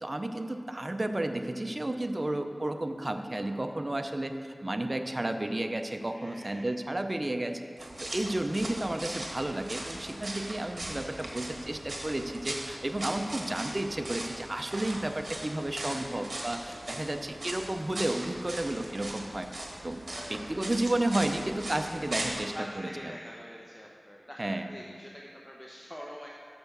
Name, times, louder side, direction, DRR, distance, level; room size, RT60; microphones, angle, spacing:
voice 1, 0.0-19.5 19.8-23.1 24.4-24.7, right 1 dB, 35° right, 6 dB, 0.5 m, -32 dB
voice 2, 6.1-6.6 16.1-16.2 16.5-16.8 20.1-20.7 22.5-26.3, equal, 15° left, -3 dB, 0.8 m, -45 dB
sound 1, 7.8-22.4, right 1 dB, 65° right, 1.2 m, -39 dB
6.8 x 5.7 x 6.7 m, 2.3 s
wide cardioid pair, 50°, 0 cm